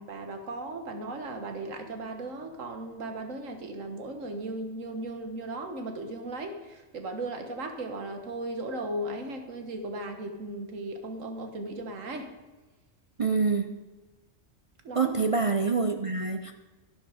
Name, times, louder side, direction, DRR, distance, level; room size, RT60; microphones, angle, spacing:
voice 1, 0.0-12.3 14.8-15.1, right 2 dB, 80° right, 6 dB, 1.7 m, -36 dB
voice 2, 13.2-13.8 15.0-16.5, right 4 dB, 45° right, 6 dB, 0.4 m, -26 dB
12.0 x 10.0 x 4.9 m, 1.2 s
omnidirectional pair, 1.3 m